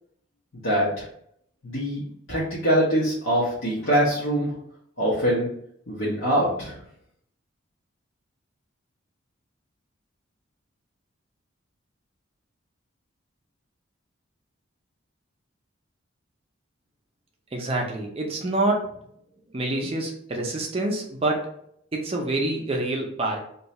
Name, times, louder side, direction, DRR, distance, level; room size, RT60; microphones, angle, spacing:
voice 1, 0.6-1.1 1.6-2.0 2.3-4.5 5.0-5.5 5.9-6.8, equal, 75° left, -9 dB, 1.0 m, -23 dB
voice 2, 17.5-19.0 19.5-21.5 21.9-23.4, right 2 dB, 30° right, 0 dB, 0.5 m, -26 dB
2.7 x 2.3 x 4.1 m, 0.70 s
head